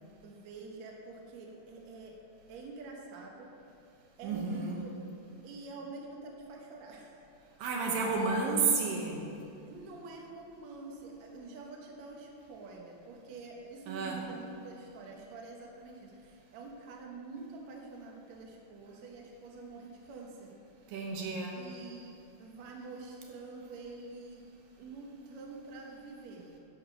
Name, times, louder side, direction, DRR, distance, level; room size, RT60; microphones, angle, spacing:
voice 1, 0.2-2.1 2.5-3.5 4.2-4.9 5.4-7.1 9.7-20.5 21.5-22.1 22.4-24.4 24.8-26.5, right 3 dB, 60° right, -1 dB, 2.2 m, -46 dB
voice 2, 4.2-4.8 7.6-9.3 13.9-14.2 20.9-21.6, right 4 dB, 80° right, 0 dB, 2.7 m, -31 dB
11.0 x 6.5 x 6.2 m, 2.6 s
omnidirectional pair, 4.1 m